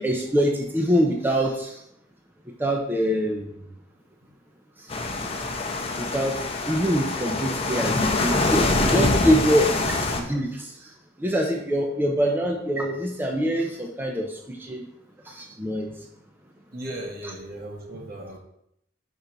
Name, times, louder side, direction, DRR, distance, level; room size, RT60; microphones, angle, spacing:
voice 1, 0.0-1.8 2.6-3.5 4.8-5.0 5.9-6.4 6.7-10.9 11.2-14.9 15.3-15.9, equal, 10° right, 1 dB, 0.6 m, -24 dB
sound 1, 4.9-10.2, left 2 dB, 35° left, 0.8 m, -25 dB
voice 2, 16.7-18.4, right 1 dB, 55° right, 1 dB, 1.3 m, -36 dB
5.3 x 3.9 x 6.0 m, 0.76 s
head